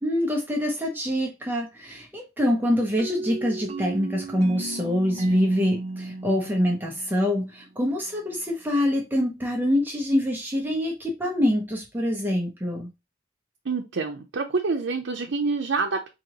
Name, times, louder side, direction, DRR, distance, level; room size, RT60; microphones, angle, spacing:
voice 1, 0.0-12.9, left 1 dB, 10° right, 0.7 m, -25 dB
sound 1, 3.0-7.7, right 2 dB, 35° right, 0.3 m, -34 dB
voice 2, 13.6-16.1, right 4 dB, 85° right, 0.6 m, -27 dB
4.1 x 2.9 x 2.9 m
head